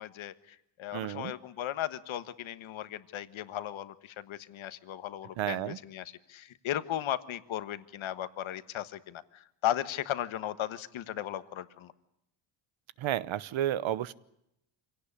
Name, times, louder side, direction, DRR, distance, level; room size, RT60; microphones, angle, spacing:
voice 1, 0.0-11.9, left 12 dB, 75° left, 13 dB, 1.4 m, -36 dB
voice 2, 0.9-1.3 5.4-5.8 13.0-14.1, right 12 dB, 70° right, 18 dB, 1.0 m, -31 dB
25.5 x 17.5 x 9.9 m, 0.81 s
cardioid pair, 125°, 48 cm